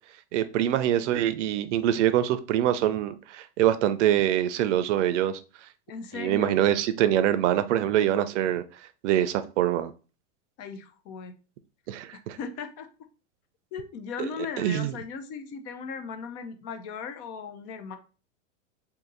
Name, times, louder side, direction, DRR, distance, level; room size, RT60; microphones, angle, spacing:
voice 1, 0.3-5.4 6.1-8.6 9.0-9.9 11.9-12.4 14.2-14.3 14.6-14.9, right 11 dB, 70° right, 0.5 m, -24 dB
voice 2, 5.9-6.6 10.6-11.3 12.3-12.9 13.7-18.0, left 6 dB, 40° left, 0.6 m, -37 dB
2.7 x 2.7 x 3.8 m
supercardioid pair, 130°, 37 cm